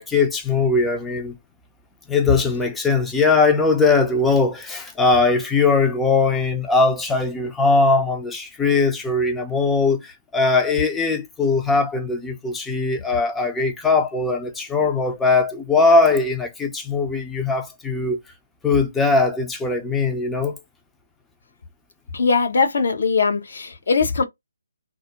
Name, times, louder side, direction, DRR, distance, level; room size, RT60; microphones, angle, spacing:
voice 1, 0.0-1.3 2.1-18.2 18.6-20.6, left 3 dB, 5° left, 0.5 m, -20 dB
voice 2, 22.1-24.2, left 4 dB, 55° left, 0.6 m, -20 dB
2.3 x 2.1 x 2.7 m
figure-of-eight pair, 145°, 0 cm